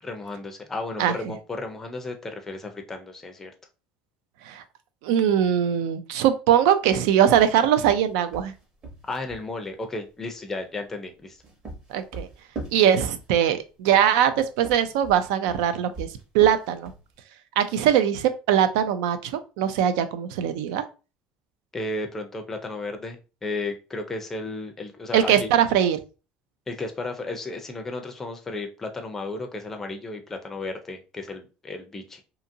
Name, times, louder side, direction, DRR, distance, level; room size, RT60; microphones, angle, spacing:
voice 1, 0.0-3.5 9.0-11.4 21.7-25.5 26.7-32.2, left 2 dB, 10° left, 4 dB, 0.4 m, -34 dB
voice 2, 1.0-1.3 4.4-4.6 5.0-8.5 11.9-12.3 12.7-16.1 16.3-16.9 17.6-20.8 25.1-26.0, right 9 dB, 90° right, 11 dB, 0.4 m, -21 dB
sound 1, 6.8-9.5 11.2-13.6 14.5-17.1, right 3 dB, 25° right, 0.9 m, -40 dB
2.8 x 2.5 x 2.6 m, 0.32 s
cardioid pair, 160°, 3 cm